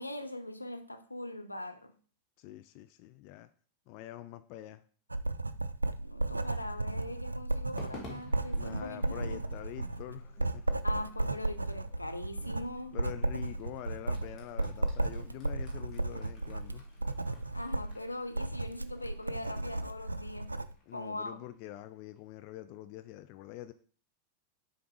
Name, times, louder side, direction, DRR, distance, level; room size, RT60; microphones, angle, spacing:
voice 1, 0.0-1.9 6.0-9.4 10.8-13.0 17.5-20.6 20.9-21.4, left 1 dB, 85° left, 0.6 m, -41 dB
voice 2, 2.4-3.5 3.9-4.8 8.5-10.8 12.9-16.8 20.9-23.7, left 14 dB, 45° left, 0.4 m, -45 dB
Writing, 5.1-20.7, right 2 dB, 80° right, 0.3 m, -34 dB
Crowd / Fireworks, 7.8-22.2, left 2 dB, 25° left, 2.1 m, -55 dB
7.0 x 3.6 x 4.6 m
figure-of-eight pair, 90°, 0 cm